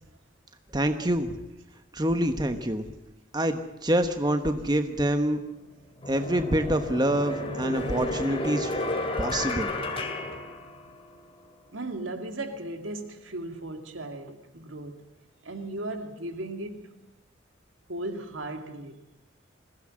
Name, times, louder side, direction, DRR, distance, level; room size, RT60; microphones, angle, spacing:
voice 1, 0.7-1.3 1.9-2.9 3.3-5.4 6.1-8.8 9.2-9.7, right 1 dB, 20° right, 1.2 m, -26 dB
sound 1, 6.0-11.2, left 2 dB, 30° left, 2.5 m, -32 dB
voice 2, 11.7-15.1 15.4-17.0 17.9-19.0, right 2 dB, 90° right, 2.3 m, -36 dB
21.5 x 16.0 x 7.7 m
head